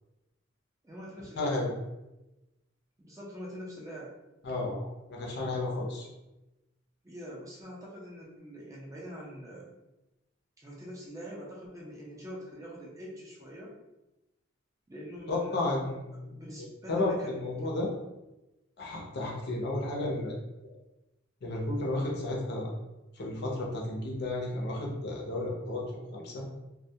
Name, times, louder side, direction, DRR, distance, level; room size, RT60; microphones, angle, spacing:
voice 1, 0.8-1.6 3.0-4.1 7.0-9.8 10.6-13.8 14.9-15.7 16.1-17.8, equal, 15° right, -5 dB, 0.5 m, -44 dB
voice 2, 1.4-1.7 4.4-4.8 5.1-6.1 15.3-16.3 16.6-17.9 18.8-20.3 21.4-22.7 23.2-26.4, left 2 dB, 55° left, -1 dB, 0.5 m, -32 dB
2.2 x 2.2 x 2.6 m, 0.99 s
head